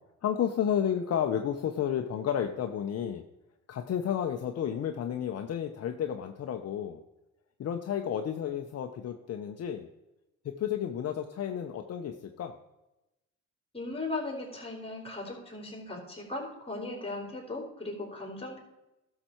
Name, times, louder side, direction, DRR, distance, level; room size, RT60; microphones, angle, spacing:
voice 1, 0.2-3.2 3.7-7.0 7.6-9.9 10.4-12.5, left 9 dB, 55° left, 5 dB, 0.8 m, -31 dB
voice 2, 13.7-18.6, left 2 dB, 20° left, 1 dB, 3.6 m, -37 dB
12.0 x 6.8 x 4.4 m, 0.95 s
cardioid pair, 90°, 30 cm